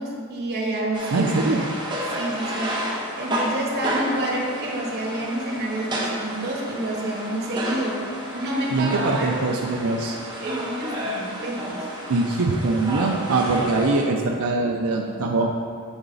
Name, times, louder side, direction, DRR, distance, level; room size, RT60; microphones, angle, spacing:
voice 1, 0.0-1.3 2.1-2.8 3.2-8.0 8.3-9.4 10.4-11.8, right 1 dB, 50° right, -3 dB, 1.2 m, -28 dB
sound 1, 0.9-14.1, equal, 20° right, 0.9 m, -31 dB
voice 2, 1.1-1.6 8.7-10.1 12.1-15.5, right 3 dB, 90° right, 0 dB, 0.5 m, -22 dB
8.0 x 4.0 x 3.9 m, 2.2 s
head